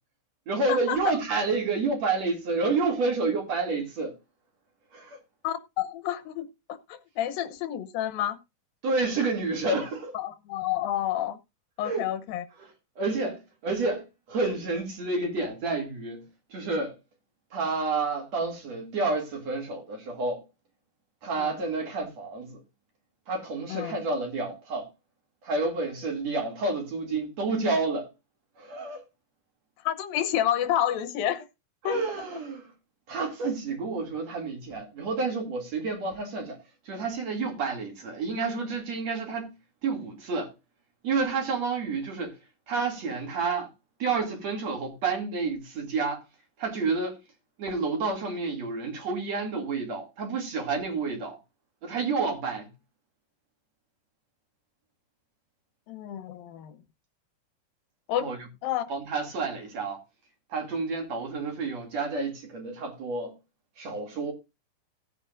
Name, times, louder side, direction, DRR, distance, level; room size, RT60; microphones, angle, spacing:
voice 1, 0.5-4.2 4.9-5.2 8.8-10.1 11.8-12.1 12.6-12.7 13.0-16.2 16.5-17.0 17.5-20.4 21.2-22.6 23.3-24.9 25.4-28.1 28.6-29.0 31.8-32.7 33.1-36.6 36.9-39.5 39.8-40.5 41.0-42.4 42.7-43.7 44.0-46.2 46.6-47.2 47.6-51.4 51.8-52.7 58.2-58.4 58.9-60.0 60.5-63.3 63.8-64.3, right 3 dB, 50° right, 3.4 m, -29 dB
voice 2, 5.4-8.4 10.1-11.4 11.8-12.4 21.4-21.5 23.7-24.0 29.8-31.5 31.8-32.0 55.9-56.8 58.1-58.3 58.6-58.8, left 11 dB, 75° left, 2.6 m, -29 dB
16.5 x 9.1 x 2.5 m
omnidirectional pair, 4.3 m